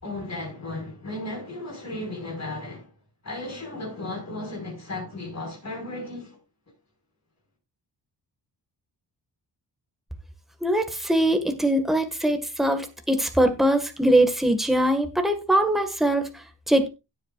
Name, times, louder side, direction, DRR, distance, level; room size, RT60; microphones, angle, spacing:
voice 1, 0.0-2.9 3.2-6.4, left 2 dB, 40° left, 5.2 m, -35 dB
voice 2, 10.6-16.9, right 1 dB, ahead, 1.7 m, -22 dB
17.0 x 8.5 x 2.5 m
wide cardioid pair, 145°, 43 cm